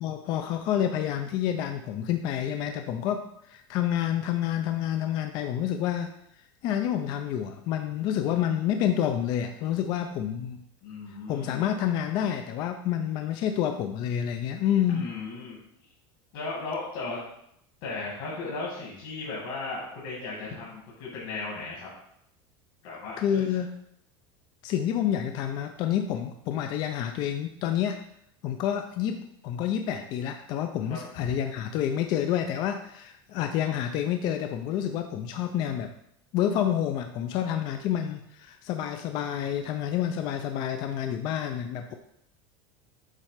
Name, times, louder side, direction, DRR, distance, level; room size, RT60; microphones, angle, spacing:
voice 1, 0.0-6.1 6.6-10.6 11.3-15.1 23.2-23.7 24.6-28.0 28.4-35.9 36.3-41.9, left 10 dB, 35° left, 6 dB, 0.4 m, -28 dB
voice 2, 10.8-11.7 14.9-15.6 16.3-17.2 17.8-21.9 22.8-23.6 30.9-31.3, left 3 dB, 55° left, -5 dB, 2.0 m, -36 dB
7.4 x 3.2 x 4.9 m, 0.74 s
cardioid pair, 175°, 12 cm